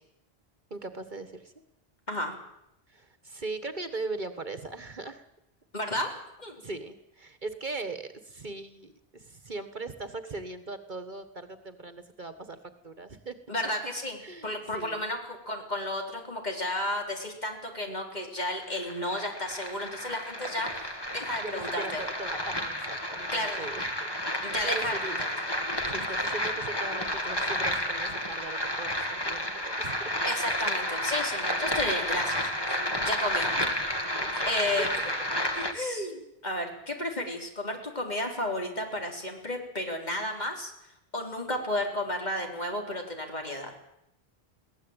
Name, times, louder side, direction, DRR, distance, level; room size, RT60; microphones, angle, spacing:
voice 1, 0.7-1.5 2.9-5.3 6.6-12.6 12.8-13.4 14.2-15.1 21.4-25.2 25.8-30.1 33.6-33.7 34.2-34.5 35.3-35.5, right 3 dB, 50° right, 10 dB, 1.6 m, -39 dB
voice 2, 5.7-6.1 6.4-6.6 13.5-20.7 21.1-22.0 23.3-23.7 24.4-24.9 30.3-32.7 33.0-33.5 34.5-35.1 35.5-40.7 41.1-43.7, left 1 dB, 45° left, 2 dB, 4.3 m, -32 dB
sound 1, 18.4-35.7, left 1 dB, 25° left, 2.1 m, -31 dB
21.5 x 17.5 x 9.0 m, 0.83 s
omnidirectional pair, 1.1 m